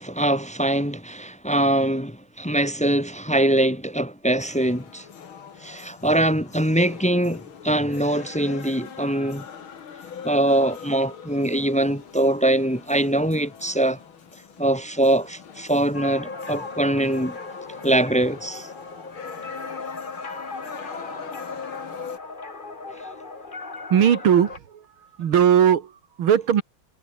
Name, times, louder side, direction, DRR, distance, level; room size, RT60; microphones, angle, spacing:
voice 1, 0.0-5.0 5.6-9.4 10.2-14.0 14.6-17.4 17.8-18.7, right 1 dB, 5° left, 0.8 m, -23 dB
sound 1, 4.4-22.2, left 7 dB, 75° left, 2.8 m, -42 dB
sound 2, 15.9-24.6, left 3 dB, 25° left, 2.2 m, -37 dB
voice 2, 23.9-24.9 25.2-26.6, right 9 dB, 80° right, 2.4 m, -19 dB
omnidirectional pair, 2.3 m